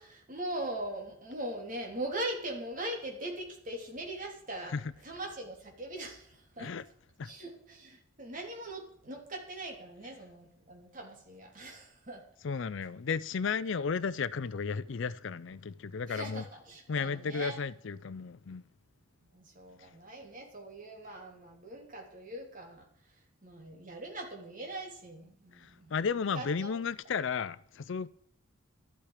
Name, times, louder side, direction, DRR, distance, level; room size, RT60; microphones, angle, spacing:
voice 1, 0.0-4.7 5.0-6.7 7.2-12.2 16.1-17.6 19.2-22.9 23.4-26.7, right 1 dB, 40° right, 3.3 m, -41 dB
voice 2, 12.4-16.4 16.9-18.6 25.5-28.1, left 5 dB, 60° left, 0.5 m, -34 dB
13.0 x 12.0 x 4.9 m
head